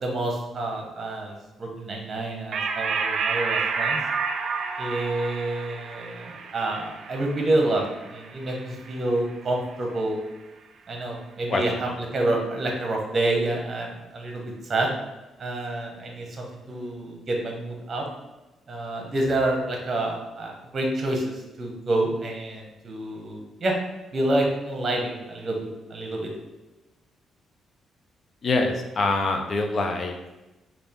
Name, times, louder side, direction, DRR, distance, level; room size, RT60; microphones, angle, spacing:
voice 1, 0.0-4.0 4.8-10.2 10.9-14.4 14.7-14.9 15.4-18.0 18.7-23.7 24.1-26.3, right 2 dB, 40° right, 1 dB, 0.9 m, -28 dB
sound 1, 2.5-9.4, right 5 dB, 60° right, 0.3 m, -30 dB
voice 2, 28.4-30.2, left 3 dB, 45° left, 3 dB, 0.5 m, -24 dB
3.3 x 2.4 x 3.8 m, 1.1 s
cardioid pair, 90°, 0 cm